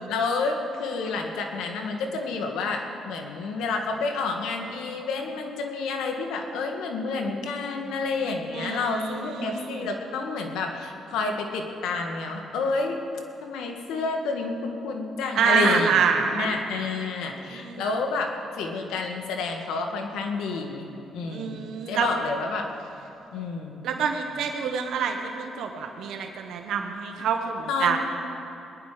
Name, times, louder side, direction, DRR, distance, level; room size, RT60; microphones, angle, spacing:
voice 1, 0.1-13.0 13.4-16.0 16.3-20.9 21.1-22.7 23.3-23.8 27.7-28.0, left 4 dB, 90° left, 3 dB, 1.7 m, -29 dB
voice 2, 8.5-9.8 15.3-16.5 17.5-17.8 21.3-22.1 23.8-28.0, right 6 dB, 80° right, 4 dB, 1.2 m, -26 dB
20.5 x 10.5 x 5.0 m, 2.9 s
cardioid pair, 90°, 0 cm